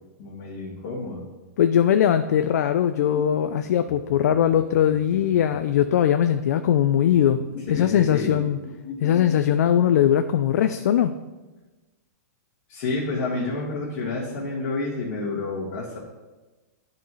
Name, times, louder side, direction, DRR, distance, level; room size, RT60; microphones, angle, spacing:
voice 1, 0.2-1.2 7.7-8.4 12.7-16.0, left 3 dB, 50° left, -6 dB, 1.7 m, -29 dB
voice 2, 1.6-8.6 9.0-11.1, left 10 dB, 70° left, 9 dB, 0.4 m, -20 dB
sound 1, 2.9-5.8 7.1-9.3, left 5 dB, 30° left, 1.3 m, -39 dB
10.5 x 4.1 x 3.1 m, 1.2 s
hypercardioid pair, 145°, 9 cm